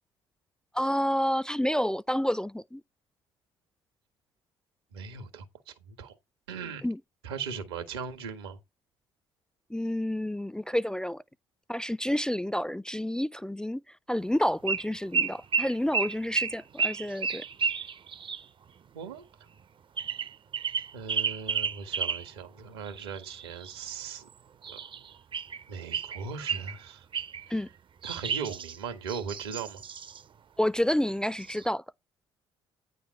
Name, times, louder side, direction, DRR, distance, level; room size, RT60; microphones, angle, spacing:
voice 1, 0.7-2.8 6.8-7.0 9.7-11.2 11.7-13.8 14.1-17.4 27.5-27.7 30.6-31.8, equal, 5° left, 0.4 m, -29 dB
voice 2, 4.9-6.1 6.5-6.9 7.2-8.6 18.9-19.2 20.9-24.2 24.7-24.8 25.7-27.1 27.5-27.6 28.0-29.8, right 6 dB, 80° right, 1.7 m, -39 dB
sound 1, 14.7-14.9 15.1-18.4 20.0-22.3 22.8-23.8 24.6-25.6 25.9-26.8 27.1-27.5 28.0-30.2 31.1-31.2 31.4-31.7, right 6 dB, 40° right, 0.6 m, -32 dB
9.7 x 3.9 x 5.4 m
hypercardioid pair, 50°, 13 cm